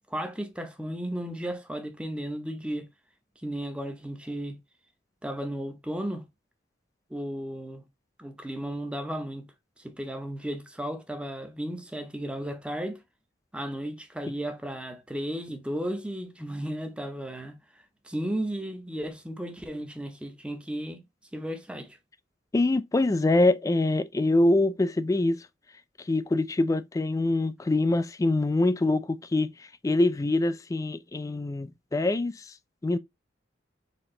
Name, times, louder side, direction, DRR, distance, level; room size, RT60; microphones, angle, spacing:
voice 1, 0.1-2.9 3.4-4.6 5.2-6.3 7.1-7.8 8.2-9.5 9.8-13.0 13.5-17.6 18.0-21.0 21.3-22.0, right 1 dB, 5° right, 0.7 m, -34 dB
voice 2, 22.5-25.5 26.1-32.5 32.8-33.0, left 2 dB, 20° left, 0.3 m, -24 dB
4.3 x 2.9 x 3.7 m
head